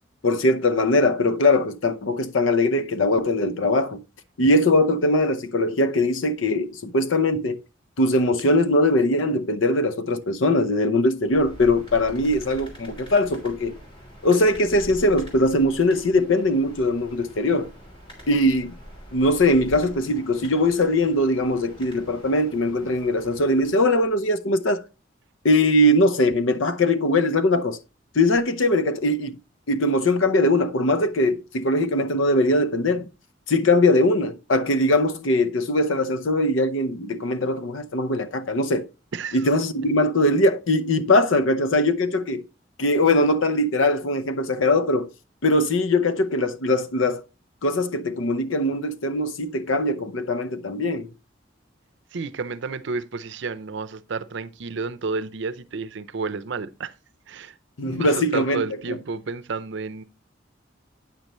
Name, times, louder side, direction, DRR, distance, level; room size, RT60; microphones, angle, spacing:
voice 1, 0.2-4.0 4.4-7.6 8.0-13.7 14.2-17.7 18.3-18.8 19.1-24.8 25.4-27.8 28.1-29.4 29.7-33.1 33.5-38.9 39.3-42.4 42.8-45.1 45.4-47.2 47.6-51.1 57.8-58.6 58.9-59.0, left 1 dB, 85° left, 0.7 m, -21 dB
sound 1, 11.2-24.2, equal, 25° left, 2.9 m, -44 dB
voice 2, 52.1-56.9 57.3-57.5 57.9-60.0, right 4 dB, 65° right, 0.6 m, -31 dB
8.9 x 6.5 x 3.0 m
head